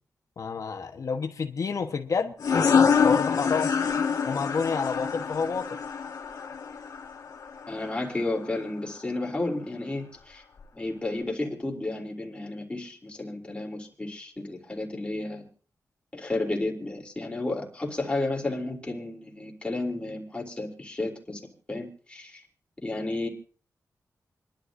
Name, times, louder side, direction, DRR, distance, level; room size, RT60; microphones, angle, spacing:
voice 1, 0.4-2.3 2.6-3.7 4.2-5.8, left 5 dB, 60° left, 1.1 m, -29 dB
sound 1, 2.4-7.8, left 6 dB, 80° left, 1.8 m, -25 dB
voice 2, 7.7-10.4 10.7-15.4 16.1-21.4 21.7-22.4 22.8-23.3, left 2 dB, 20° left, 3.3 m, -32 dB
29.0 x 11.5 x 2.6 m
wide cardioid pair, 110°, 6 cm